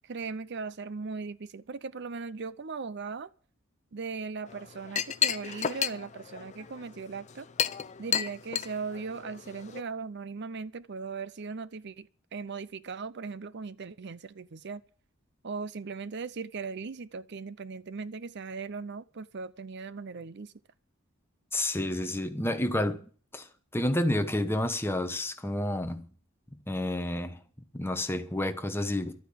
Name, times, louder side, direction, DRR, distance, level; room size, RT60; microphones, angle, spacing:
voice 1, 0.0-3.3 3.9-7.5 8.0-14.8 15.4-20.5, right 4 dB, 55° right, 0.6 m, -38 dB
Chink clink, 4.5-9.8, left 8 dB, 35° left, 0.6 m, -33 dB
voice 2, 21.5-23.1 23.3-23.5 23.7-26.1 26.7-27.4 27.7-29.3, left 1 dB, 10° left, 1.2 m, -30 dB
12.5 x 9.1 x 8.6 m
head